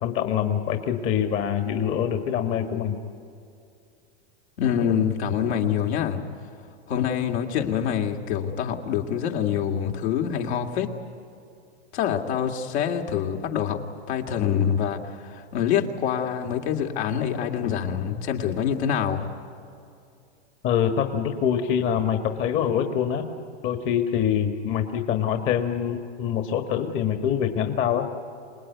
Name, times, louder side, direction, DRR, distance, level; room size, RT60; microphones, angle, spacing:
voice 1, 0.0-3.0 20.6-23.3 23.6-28.1, left 8 dB, 35° left, 7 dB, 1.6 m, -25 dB
voice 2, 4.6-6.2 6.9-10.9 11.9-13.8 14.1-19.3, left 8 dB, 70° left, 3 dB, 2.5 m, -25 dB
26.5 x 19.5 x 9.4 m, 2.5 s
hypercardioid pair, 130°, 35 cm